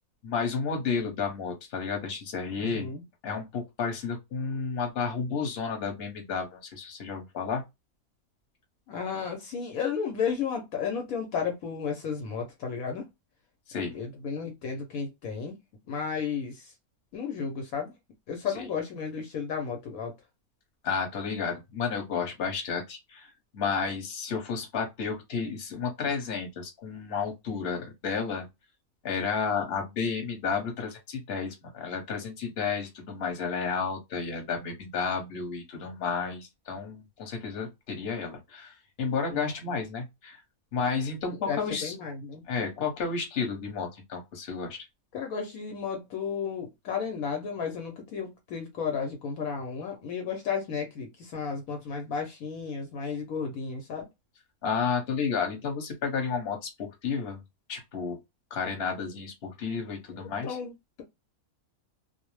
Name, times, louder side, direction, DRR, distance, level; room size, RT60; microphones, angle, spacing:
voice 1, 0.2-2.9 3.2-7.6 13.7-13.9 18.5-18.6 20.8-23.3 23.5-28.5 29.0-40.4 40.7-41.9 42.5-44.8 54.6-57.4 57.7-58.2 58.5-60.6, left 5 dB, 45° left, 1.0 m, -32 dB
voice 2, 2.6-3.0 8.9-13.1 13.9-15.5 15.9-16.7 17.1-17.9 18.3-20.1 39.3-39.5 41.5-42.4 45.1-54.1 60.1-60.2 60.4-61.0, left 6 dB, 75° left, 1.1 m, -33 dB
2.5 x 2.0 x 3.0 m
omnidirectional pair, 1.5 m